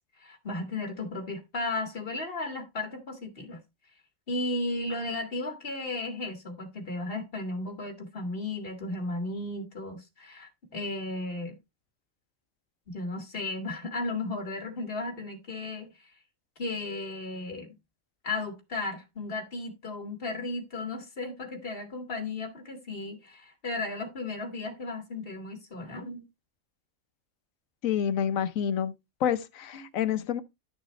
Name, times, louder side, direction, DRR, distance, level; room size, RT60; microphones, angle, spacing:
voice 1, 0.2-3.6 4.3-11.6 12.9-15.9 16.6-17.7 18.2-26.2 29.7-29.8, left 2 dB, 45° left, 2.2 m, -35 dB
voice 2, 27.8-28.9 29.2-30.4, left 9 dB, 85° left, 1.2 m, -28 dB
12.0 x 6.4 x 3.1 m
omnidirectional pair, 1.4 m